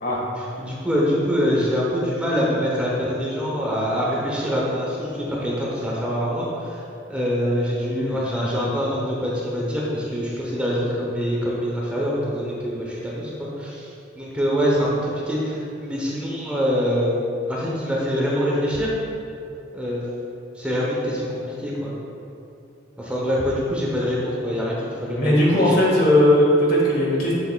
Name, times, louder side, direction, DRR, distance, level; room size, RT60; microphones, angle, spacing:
voice 1, 0.4-6.8 7.1-18.9 19.7-20.0 20.5-21.9 23.0-25.8, equal, 5° right, -5 dB, 0.8 m, -25 dB
voice 2, 7.9-8.7 25.1-27.3, left 1 dB, 50° left, -4 dB, 1.5 m, -19 dB
7.5 x 7.2 x 2.3 m, 2.7 s
head